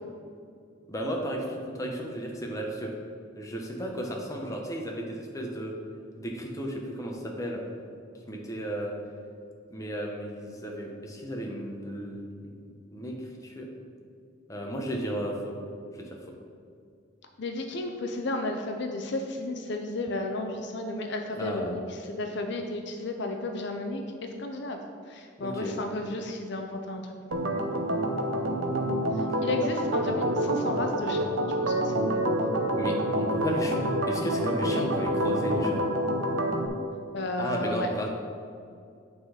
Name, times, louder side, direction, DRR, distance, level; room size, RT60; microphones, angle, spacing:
voice 1, 0.9-2.9 3.4-5.8 6.1-7.6 8.3-9.0 9.7-13.7 14.5-15.6 15.9-16.2 21.3-21.7 25.4-25.7 32.7-35.8 37.4-38.1, equal, 15° left, 0 dB, 0.9 m, -34 dB
voice 2, 17.4-24.8 25.1-27.1 27.4-27.8 29.1-32.5 37.1-37.9, left 2 dB, 60° left, 4 dB, 0.6 m, -33 dB
Organ, 27.3-36.7, right 1 dB, 80° right, 0.7 m, -27 dB
8.6 x 4.0 x 5.0 m, 2.3 s
head